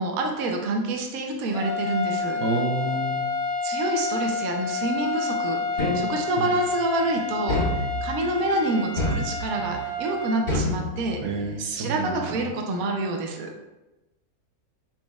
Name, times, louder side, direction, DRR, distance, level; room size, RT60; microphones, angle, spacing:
voice 1, 0.0-2.4 3.6-13.5, right 2 dB, 70° right, 2 dB, 1.0 m, -27 dB
sound 1, 1.4-10.4, left 4 dB, 40° left, 1.1 m, -30 dB
voice 2, 2.4-3.2 6.4-6.5 11.2-12.2, right 3 dB, 90° right, 1 dB, 1.3 m, -28 dB
sound 2, 5.8-6.5 7.5-8.3 9.0-9.8 10.5-11.5, left 1 dB, 75° left, 2.2 m, -28 dB
5.5 x 4.2 x 2.3 m, 1.0 s
omnidirectional pair, 1.6 m